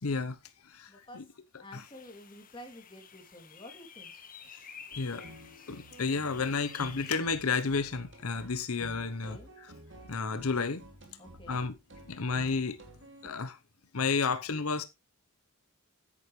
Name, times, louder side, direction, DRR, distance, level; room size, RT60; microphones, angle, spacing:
voice 1, 0.0-0.4 0.6-1.2 1.7-1.8 4.9-5.3 5.7-9.4 10.1-10.8 11.5-11.7 12.1-12.8 13.2-13.6 13.9-14.8, left 4 dB, 90° left, 0.9 m, -31 dB
voice 2, 0.9-1.2 1.5-4.1 9.2-9.5 11.2-11.7, left 1 dB, 25° left, 2.8 m, -50 dB
sound 1, 1.7-7.2, left 7 dB, 40° left, 1.4 m, -50 dB
sound 2, 4.9-13.3, equal, 60° right, 2.6 m, -52 dB
9.9 x 9.2 x 3.2 m
head